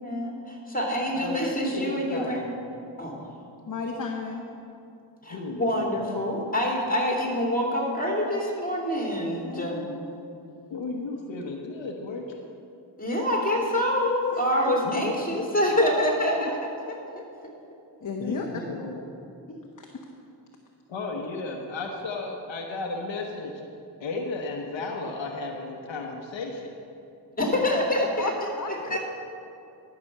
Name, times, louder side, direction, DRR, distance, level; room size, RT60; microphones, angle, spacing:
voice 1, 0.0-2.4 3.0-3.2 5.2-9.8 13.0-17.5 27.6-28.3 28.9-29.0, left 1 dB, 20° left, -2 dB, 2.9 m, -26 dB
voice 2, 1.7-2.5 5.3-5.9 10.7-12.4 14.8-15.5 18.2-19.0 20.9-23.5 24.0-26.7 28.9-29.0, left 3 dB, 90° left, 1 dB, 1.1 m, -34 dB
voice 3, 3.6-4.4 9.4-10.0 14.3-14.4 16.4-16.5 18.0-18.5 19.5-19.9 27.4-27.5 28.2-28.7, left 4 dB, 45° left, 0 dB, 1.1 m, -33 dB
13.0 x 6.0 x 6.6 m, 2.6 s
cardioid pair, 55°, 44 cm